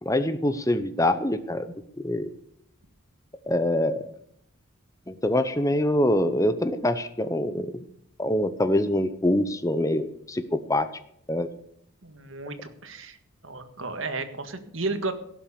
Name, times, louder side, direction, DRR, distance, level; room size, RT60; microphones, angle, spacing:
voice 1, 0.0-2.3 3.5-4.2 5.1-7.8 8.2-10.9 11.3-11.5, left 1 dB, 15° left, 11 dB, 0.7 m, -25 dB
voice 2, 12.0-13.2 13.4-15.1, right 3 dB, 65° right, 9 dB, 1.7 m, -33 dB
17.0 x 7.5 x 7.0 m, 0.71 s
head